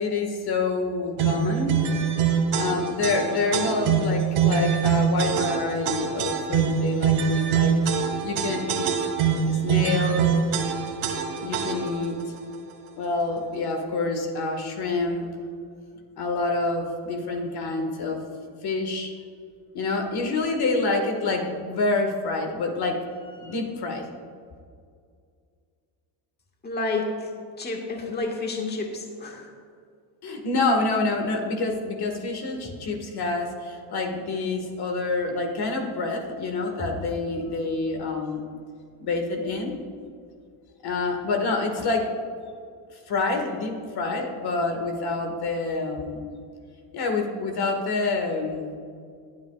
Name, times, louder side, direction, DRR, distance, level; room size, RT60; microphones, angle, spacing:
voice 1, 0.0-1.8 2.6-7.7 8.2-8.9 9.5-10.3 11.4-12.4 13.0-15.3 16.2-18.2 18.6-19.1 19.7-24.0 30.2-38.5 39.0-39.7 40.8-42.1 42.9-46.2 46.9-48.7, left 3 dB, 50° left, 3 dB, 1.7 m, -27 dB
sound 1, 1.2-12.0, right 6 dB, 80° right, 1.9 m, -24 dB
voice 2, 26.6-29.5, left 3 dB, 20° left, 0 dB, 1.6 m, -30 dB
20.0 x 8.9 x 2.4 m, 2.2 s
cardioid pair, 105°, 48 cm